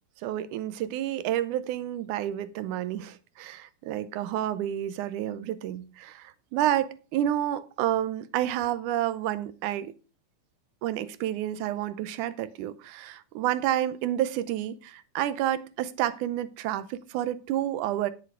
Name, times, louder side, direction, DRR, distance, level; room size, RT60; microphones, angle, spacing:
voice 1, 0.2-9.9 10.8-18.1, right 12 dB, 80° right, 2.2 m, -30 dB
9.8 x 8.5 x 4.6 m
omnidirectional pair, 3.6 m